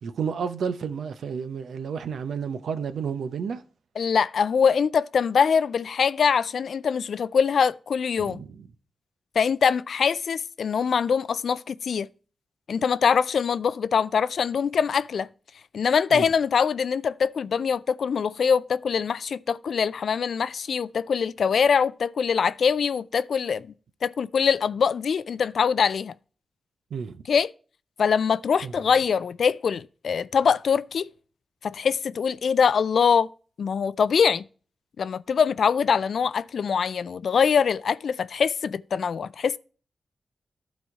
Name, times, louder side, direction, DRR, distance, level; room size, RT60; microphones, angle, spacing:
voice 1, 0.0-3.6 8.2-8.7 16.1-16.2 26.9-27.2 28.6-28.7, right 6 dB, 85° right, 0.7 m, -31 dB
voice 2, 4.0-8.4 9.4-12.1 12.7-15.3 15.7-23.7 24.0-26.1 27.3-27.5 28.0-31.1 31.6-33.3 33.6-34.4 35.0-39.6, left 6 dB, 75° left, 0.3 m, -23 dB
11.5 x 4.2 x 4.6 m
cardioid pair, 50°, 0 cm